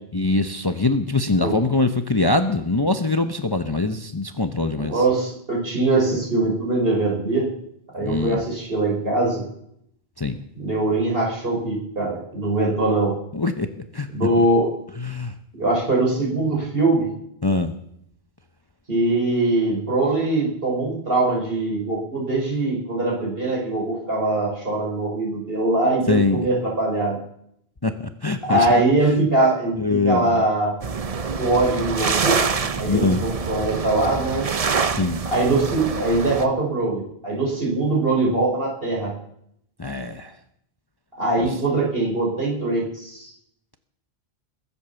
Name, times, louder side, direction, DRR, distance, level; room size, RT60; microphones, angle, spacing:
voice 1, 0.1-5.0 8.0-8.4 10.2-10.4 13.3-13.7 13.9-14.1 15.0-15.3 17.4-17.7 26.1-26.5 27.8-28.0 28.2-28.7 29.8-30.4 32.8-33.2 35.0-35.2 39.8-40.3 41.4-41.5, left 3 dB, 25° left, 8 dB, 0.8 m, -23 dB
voice 2, 4.8-7.5 7.9-9.4 10.6-13.1 14.1-14.7 15.6-17.1 18.9-27.2 28.5-30.7 31.4-32.4 32.8-34.5 35.3-39.1 41.2-43.3, right 2 dB, 60° right, -3 dB, 5.5 m, -22 dB
sound 1, 30.8-36.5, right 5 dB, 40° right, 0.8 m, -26 dB
22.0 x 8.4 x 7.0 m, 0.73 s
omnidirectional pair, 1.1 m